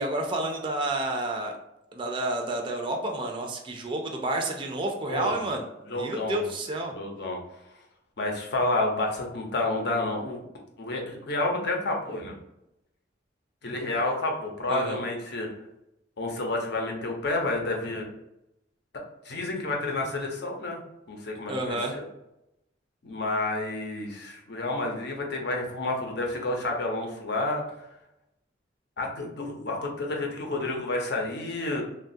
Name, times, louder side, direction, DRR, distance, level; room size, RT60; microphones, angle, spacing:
voice 1, 0.0-1.5 1.9-6.9 14.7-15.0 21.5-22.0, right 1 dB, 25° right, 2 dB, 0.4 m, -30 dB
voice 2, 5.1-5.4 5.9-6.5 6.9-7.4 8.2-10.4 10.8-12.4 13.6-15.5 16.2-18.1 19.2-20.8 21.1-22.0 23.0-27.6 29.0-31.8, left 2 dB, 65° left, 1 dB, 0.7 m, -30 dB
3.1 x 2.3 x 2.6 m, 0.86 s
head